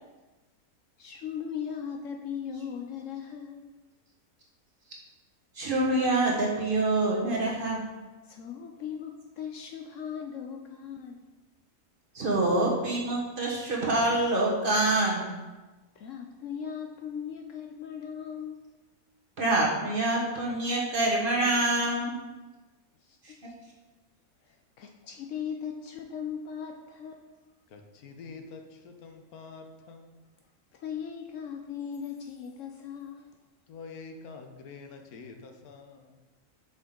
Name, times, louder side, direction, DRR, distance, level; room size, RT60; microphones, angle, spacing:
voice 1, 1.0-3.7 8.2-11.2 16.0-18.7 23.0-23.5 24.4-27.4 30.7-33.3, left 7 dB, 65° left, 3 dB, 0.8 m, -38 dB
voice 2, 5.5-7.8 12.1-15.3 19.4-22.1 23.2-23.3, right 2 dB, 40° right, -4 dB, 1.2 m, -26 dB
voice 3, 27.7-30.2 33.7-36.2, left 4 dB, 80° left, 5 dB, 1.2 m, -46 dB
6.0 x 5.3 x 3.7 m, 1.2 s
omnidirectional pair, 1.5 m